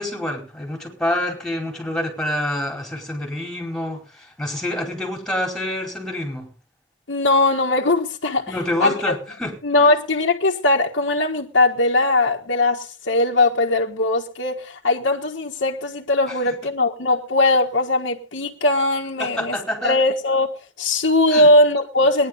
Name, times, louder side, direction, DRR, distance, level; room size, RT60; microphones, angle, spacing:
voice 1, 0.0-6.5 8.5-9.5 16.3-16.5 19.2-20.0 21.3-21.5, left 1 dB, 5° left, 4.8 m, -27 dB
voice 2, 7.1-8.5 8.8-9.2 9.6-19.6 19.8-22.3, left 2 dB, 70° left, 1.5 m, -20 dB
20.0 x 11.0 x 4.0 m
head